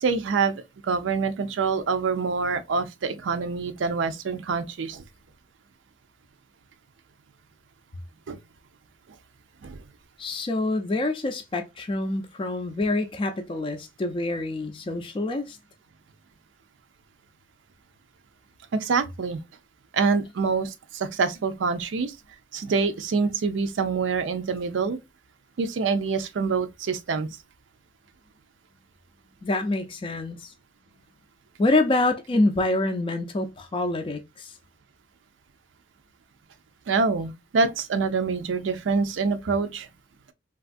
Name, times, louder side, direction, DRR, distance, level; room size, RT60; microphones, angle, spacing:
voice 1, 0.0-5.0 8.3-8.4 9.6-9.8 18.7-19.4 19.9-22.2 22.5-25.0 25.6-27.3 36.9-39.9, right 4 dB, 80° right, 0.4 m, -26 dB
voice 2, 10.2-15.6 29.4-30.5 31.6-34.6, left 2 dB, 30° left, 0.4 m, -26 dB
3.3 x 2.3 x 2.5 m
head